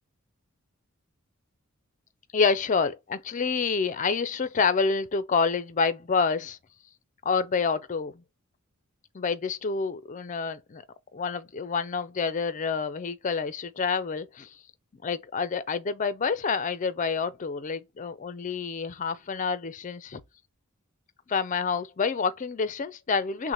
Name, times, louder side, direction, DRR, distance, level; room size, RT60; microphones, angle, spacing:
voice 1, 2.3-6.6 7.2-8.1 9.1-10.8 11.1-14.5 15.0-20.2 21.3-23.5, left 5 dB, 35° left, 0.4 m, -28 dB
6.1 x 2.1 x 2.9 m
head